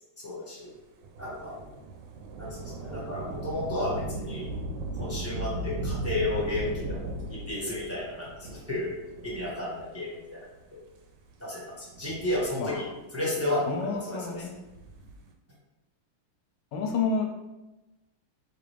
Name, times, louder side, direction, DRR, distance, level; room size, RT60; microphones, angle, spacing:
voice 1, 0.2-0.7 1.2-1.6 2.4-4.5 5.0-8.9 9.2-10.4 11.4-12.9 13.1-14.5, left 1 dB, 10° right, -6 dB, 0.7 m, -32 dB
Thunder / Rain, 1.0-10.0 10.7-10.8 11.8-13.0 14.6-15.3, right 2 dB, 80° right, 1.3 m, -37 dB
voice 2, 13.7-14.5 16.7-17.3, left 4 dB, 75° left, 2 dB, 1.1 m, -29 dB
4.9 x 2.5 x 3.2 m, 1.0 s
omnidirectional pair, 2.1 m